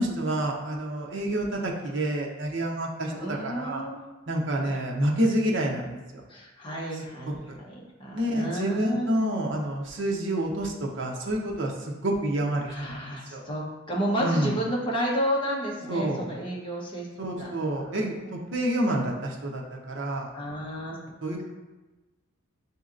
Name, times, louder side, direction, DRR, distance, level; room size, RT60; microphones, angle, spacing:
voice 1, 0.0-3.8 4.3-6.2 7.3-7.6 8.1-13.0 13.3-13.4 14.2-14.6 15.9-16.4 17.2-20.3 21.2-21.4, right 1 dB, 65° right, 0 dB, 0.7 m, -28 dB
voice 2, 3.1-4.0 4.6-4.8 5.2-5.4 6.3-9.1 12.7-17.9 20.3-21.0, equal, 25° left, -4 dB, 0.9 m, -32 dB
7.2 x 2.8 x 2.5 m, 1.1 s
head